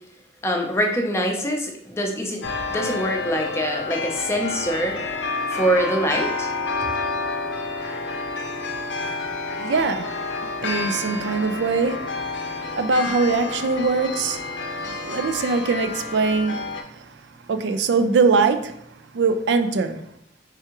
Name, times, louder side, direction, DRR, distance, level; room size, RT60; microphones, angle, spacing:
voice 1, 0.4-5.0 5.5-6.5, equal, 15° left, 2 dB, 0.6 m, -24 dB
sound 1, 2.4-16.8, left 3 dB, 85° left, 0.6 m, -29 dB
voice 2, 8.7-17.2 17.5-18.8 19.1-20.0, right 4 dB, 75° right, 8 dB, 0.4 m, -23 dB
4.6 x 3.4 x 3.0 m, 0.72 s
head